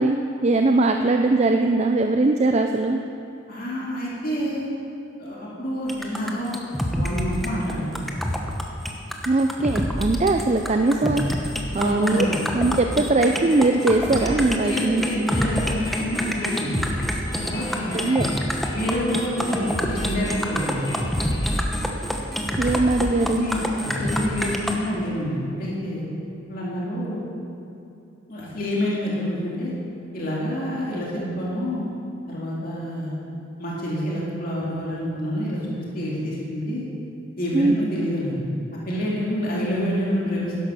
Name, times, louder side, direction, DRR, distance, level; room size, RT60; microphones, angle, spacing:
voice 1, 0.0-3.0 9.3-12.3 12.5-15.0 17.9-18.3 22.6-23.5 37.5-37.7, right 2 dB, 35° right, 5 dB, 0.5 m, -21 dB
voice 2, 3.5-4.7 5.2-6.7 6.9-8.0 11.8-12.4 14.6-16.9 17.4-18.0 18.7-20.9 23.3-23.7 24.0-26.1 26.5-27.3 28.3-29.7 30.1-31.9 32.3-33.2 33.6-36.9 37.4-38.4 38.9-40.6, equal, 45° left, -6 dB, 2.5 m, -27 dB
sound 1, 5.9-24.8, equal, ahead, 0.9 m, -27 dB
sound 2, 13.2-21.6, left 2 dB, 20° left, 1.4 m, -41 dB
11.5 x 11.0 x 6.2 m, 2.8 s
head